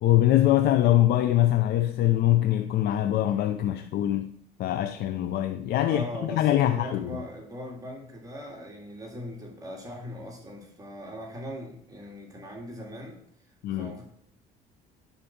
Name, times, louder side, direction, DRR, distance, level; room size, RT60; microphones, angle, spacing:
voice 1, 0.0-4.3 4.6-7.1 13.6-13.9, left 13 dB, 70° left, 0.6 m, -23 dB
voice 2, 5.8-13.2 13.7-14.0, equal, 20° right, 2.1 m, -40 dB
10.0 x 4.1 x 7.2 m
cardioid pair, 110°, 17 cm